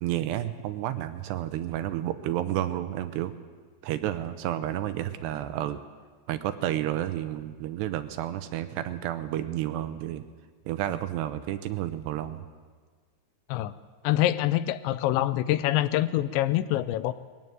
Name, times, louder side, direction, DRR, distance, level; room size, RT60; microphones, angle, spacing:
voice 1, 0.0-3.3 3.8-5.8 6.3-10.2 10.7-12.5, right 12 dB, 75° right, 10 dB, 2.8 m, -31 dB
voice 2, 14.0-17.1, left 14 dB, 85° left, 15 dB, 3.0 m, -25 dB
20.5 x 15.0 x 9.4 m, 1.5 s
omnidirectional pair, 5.2 m